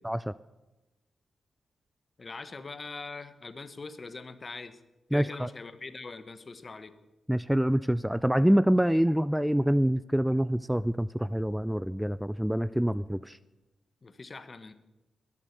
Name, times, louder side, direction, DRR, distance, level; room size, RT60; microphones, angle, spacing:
voice 1, 2.2-4.8 5.1-6.9 14.0-14.7, left 3 dB, 40° left, 11 dB, 1.2 m, -42 dB
voice 2, 5.1-5.5 7.3-13.4, equal, 5° right, 17 dB, 0.4 m, -26 dB
21.0 x 7.5 x 6.8 m, 1.1 s
supercardioid pair, 55°, 0 cm